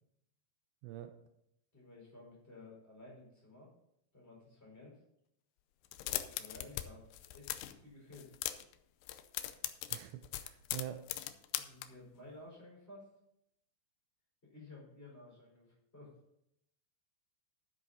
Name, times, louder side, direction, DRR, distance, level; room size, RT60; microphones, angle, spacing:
voice 1, 1.7-3.7 4.1-5.0 6.1-8.4 11.6-13.1 14.4-16.1, left 2 dB, 15° left, -4 dB, 4.7 m, -54 dB
sound 1, 5.8-6.9 7.1-7.8 8.1-8.7 9.0-11.9, left 14 dB, 80° left, 2.3 m, -39 dB
voice 2, 9.9-11.0, right 12 dB, 80° right, 7 dB, 2.7 m, -45 dB
11.5 x 7.7 x 4.2 m, 0.79 s
omnidirectional pair, 5.2 m